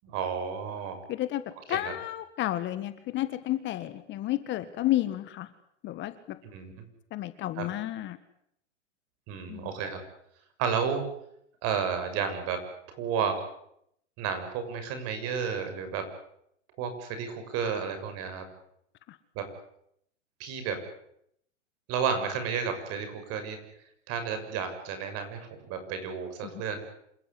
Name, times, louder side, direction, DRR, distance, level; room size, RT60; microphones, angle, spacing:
voice 1, 0.0-1.0 1.7-1.8 6.4-6.8 7.6-7.7 9.3-10.0 10.6-11.0 11.6-13.4 14.2-16.1 16.8-18.5 19.3-19.5 20.4-20.8 21.9-23.6 24.1-26.8, right 6 dB, 40° right, 8 dB, 6.6 m, -32 dB
voice 2, 1.1-1.4 1.7-5.5 5.8-6.4 7.1-8.2 9.5-9.7 19.1-19.2, left 14 dB, 30° left, 12 dB, 1.6 m, -31 dB
27.5 x 15.0 x 9.9 m, 0.74 s
hypercardioid pair, 120°, 36 cm